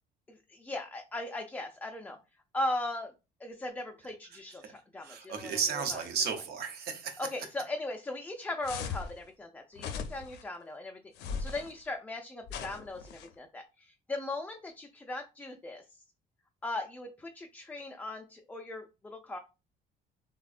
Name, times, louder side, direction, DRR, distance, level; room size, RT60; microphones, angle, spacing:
voice 1, 0.3-2.2 2.5-3.1 3.4-6.0 7.2-15.8 16.6-19.4, left 2 dB, 10° left, 3 dB, 0.3 m, -38 dB
voice 2, 5.0-7.3, right 6 dB, 70° right, 6 dB, 0.7 m, -34 dB
sound 1, 8.6-9.1 9.8-10.4 11.2-11.7 12.5-13.3, left 6 dB, 75° left, 0.5 m, -38 dB
3.3 x 2.1 x 2.4 m, 0.29 s
cardioid pair, 110°, 17 cm